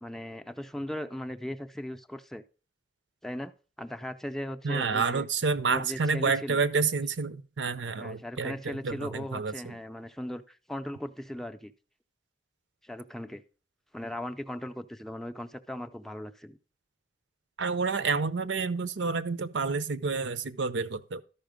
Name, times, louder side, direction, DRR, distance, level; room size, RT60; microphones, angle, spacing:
voice 1, 0.0-2.4 3.2-3.5 3.8-5.3 5.7-6.6 7.9-11.7 12.8-13.4 13.9-16.6, left 1 dB, ahead, 0.5 m, -38 dB
voice 2, 4.6-9.8 17.6-21.2, right 4 dB, 80° right, 0.6 m, -29 dB
12.5 x 5.6 x 5.1 m
head